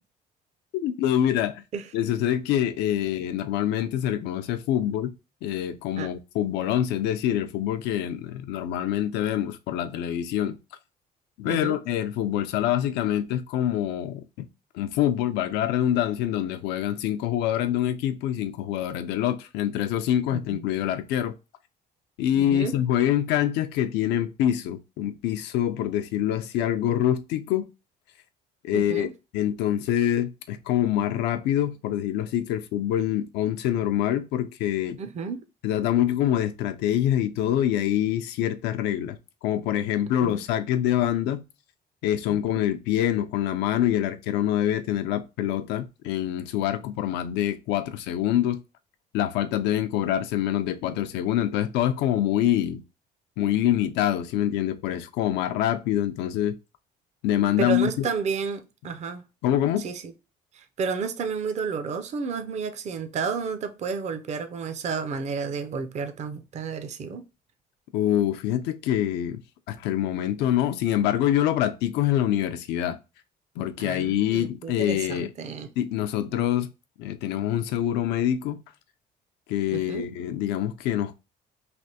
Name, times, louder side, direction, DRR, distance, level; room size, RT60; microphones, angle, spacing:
voice 1, 0.7-1.6 1.9-5.1 5.4-10.6 11.4-14.5 14.7-21.3 22.2-27.7 28.6-29.1 29.3-35.0 35.6-41.4 42.0-48.6 49.1-52.8 53.4-56.5 57.2-58.1 59.4-59.8 67.9-69.4 69.7-73.0 73.6-75.3 75.8-76.7 77.0-78.6 79.5-81.1, left 11 dB, 90° left, 0.4 m, -25 dB
voice 2, 11.5-11.8 20.3-20.6 22.3-22.7 28.7-29.1 35.0-35.4 40.2-40.4 42.3-42.4 57.6-59.2 59.8-60.1 60.5-67.2 73.8-75.7 79.7-80.1, right 5 dB, 40° right, 0.5 m, -31 dB
3.3 x 2.5 x 2.7 m
cardioid pair, 110°, 17 cm